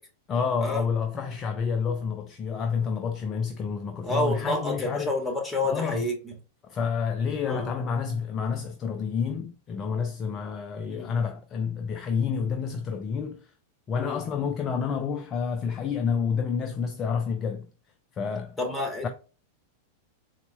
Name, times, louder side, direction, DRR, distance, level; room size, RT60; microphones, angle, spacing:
voice 1, 0.3-5.2 5.6-6.0 6.6-13.4 13.9-17.7 18.1-18.6 19.0-19.1, left 6 dB, 30° left, 0.4 m, -29 dB
voice 2, 4.0-6.3 7.5-7.7 10.9-11.1 14.0-14.2 18.6-19.1, left 2 dB, 10° left, 1.3 m, -29 dB
4.1 x 2.2 x 3.2 m
figure-of-eight pair, 95°, 0 cm